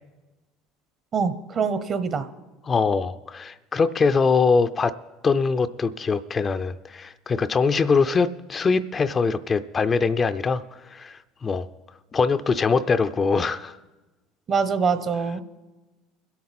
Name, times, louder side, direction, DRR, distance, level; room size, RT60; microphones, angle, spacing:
voice 1, 1.1-2.3 14.5-15.4, right 5 dB, 40° right, 12 dB, 0.9 m, -24 dB
voice 2, 2.6-4.9 5.2-11.7 12.1-13.8, left 4 dB, 30° left, 11 dB, 0.5 m, -23 dB
22.5 x 8.5 x 4.2 m, 1.2 s
supercardioid pair, 95°, 0 cm